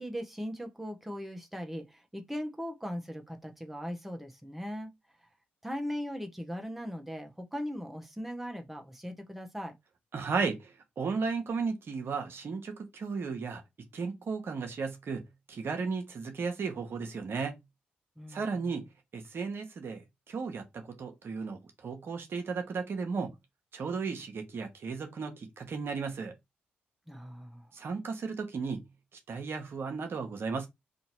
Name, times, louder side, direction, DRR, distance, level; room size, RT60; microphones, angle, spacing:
voice 1, 0.0-4.9 5.6-9.7 18.2-18.7 27.1-27.7, equal, 5° right, 0.9 m, -39 dB
voice 2, 10.1-13.6 13.9-17.6 18.3-18.8 19.1-23.3 23.7-26.4 27.7-28.8 29.3-30.7, right 5 dB, 60° right, 1.0 m, -35 dB
2.8 x 2.8 x 4.3 m
supercardioid pair, 45°, 4 cm